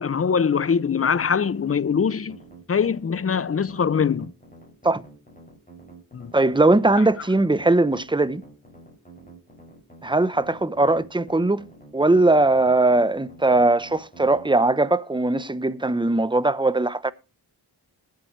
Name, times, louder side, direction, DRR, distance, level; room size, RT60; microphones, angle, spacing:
voice 1, 0.0-2.4 2.7-4.3 6.1-6.3, left 6 dB, 35° left, 0.6 m, -22 dB
sound 1, 1.1-14.5, right 1 dB, 20° left, 6.7 m, -48 dB
voice 2, 6.3-8.4 10.0-11.7 11.9-17.1, right 2 dB, 10° right, 0.8 m, -20 dB
21.5 x 7.7 x 3.2 m
wide cardioid pair, 60°, 39 cm